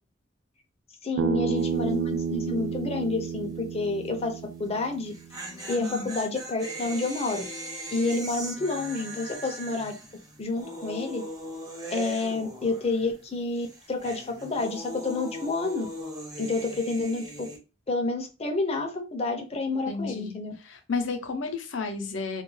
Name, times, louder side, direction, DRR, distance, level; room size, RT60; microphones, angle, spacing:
voice 1, 1.0-5.1 5.7-7.4 7.9-10.0 10.4-11.3 11.9-15.9 16.4-17.5 17.9-20.5, left 3 dB, 35° left, 4 dB, 0.5 m, -29 dB
Bass guitar, 1.2-5.4, right 5 dB, 90° right, 0.4 m, -31 dB
sound 1, 1.6-1.9 2.2-2.3 4.9-13.3 13.5-17.6, equal, 20° right, 0.7 m, -39 dB
voice 2, 19.9-20.4 20.7-22.4, left 4 dB, 90° left, 6 dB, 0.6 m, -32 dB
2.3 x 2.2 x 3.1 m, 0.31 s
head